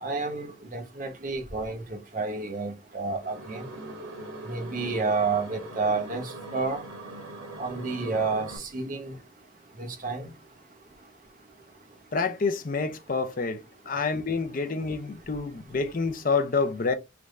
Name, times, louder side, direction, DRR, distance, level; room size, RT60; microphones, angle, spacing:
voice 1, 0.0-3.6 4.5-6.8 7.6-9.2 9.8-10.3, right 4 dB, 40° right, 0.9 m, -30 dB
sound 1, 3.2-8.6, right 2 dB, 90° right, 1.4 m, -41 dB
voice 2, 12.1-13.6 13.9-16.9, left 4 dB, 45° left, 0.5 m, -28 dB
3.4 x 2.5 x 3.1 m
head